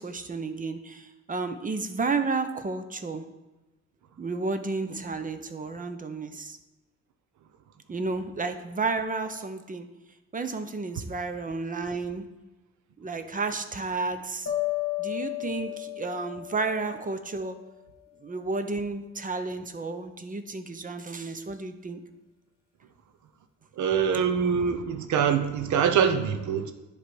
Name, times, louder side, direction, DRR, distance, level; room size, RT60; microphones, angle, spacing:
voice 1, 0.0-3.2 4.2-6.6 7.9-9.9 10.3-12.2 13.0-14.5 15.0-17.6 18.2-22.0, right 3 dB, 25° right, 9 dB, 0.7 m, -32 dB
sound 1, 14.5-17.6, left 16 dB, 45° left, 1.4 m, -33 dB
voice 2, 23.8-26.7, right 7 dB, 75° right, 9 dB, 0.9 m, -24 dB
10.0 x 3.4 x 6.1 m, 1.1 s
cardioid pair, 90°, 30 cm